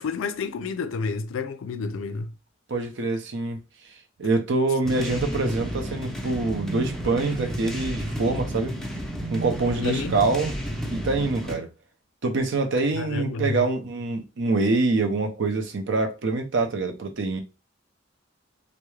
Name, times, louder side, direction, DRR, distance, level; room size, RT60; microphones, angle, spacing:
voice 1, 0.0-2.3 9.8-10.2 12.9-13.6, left 4 dB, 75° left, 0.4 m, -30 dB
voice 2, 2.7-3.6 4.2-8.7 9.3-10.6 10.9-11.7 12.2-17.4, right 3 dB, 65° right, 0.5 m, -25 dB
sound 1, 4.8-11.5, right 1 dB, 5° left, 0.5 m, -32 dB
2.3 x 2.0 x 3.0 m
head